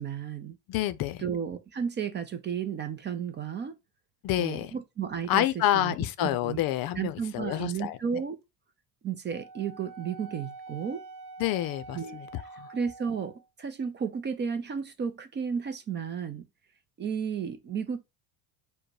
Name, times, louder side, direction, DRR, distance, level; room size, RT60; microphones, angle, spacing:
voice 1, 0.0-0.6 1.2-3.8 4.4-6.6 7.0-8.4 9.0-11.0 11.9-12.2 12.7-16.4 17.0-18.0, right 7 dB, 25° right, 0.5 m, -33 dB
voice 2, 0.7-1.2 4.2-4.7 5.3-8.0 11.4-12.7, left 13 dB, 50° left, 0.6 m, -28 dB
Wind instrument woodwind instrument, 9.3-13.5, right 3 dB, 55° right, 0.8 m, -46 dB
4.8 x 2.2 x 4.7 m
cardioid pair, 140°, 46 cm